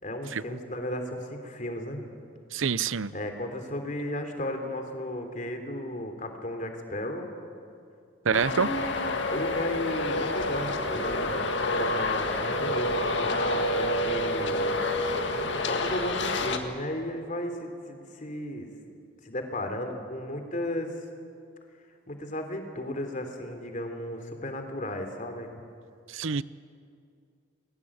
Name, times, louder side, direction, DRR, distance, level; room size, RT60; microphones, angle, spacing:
voice 1, 0.0-2.1 3.1-7.3 8.3-14.8 15.7-18.7 19.2-20.9 22.1-25.6, left 1 dB, 40° left, 5 dB, 3.3 m, -34 dB
voice 2, 2.5-3.1 8.2-8.7 26.1-26.4, right 6 dB, 75° right, 17 dB, 0.6 m, -26 dB
Traffic noise roadway noise, 8.3-16.6, left 2 dB, 60° left, 2.1 m, -28 dB
29.0 x 22.0 x 8.7 m, 2.4 s
head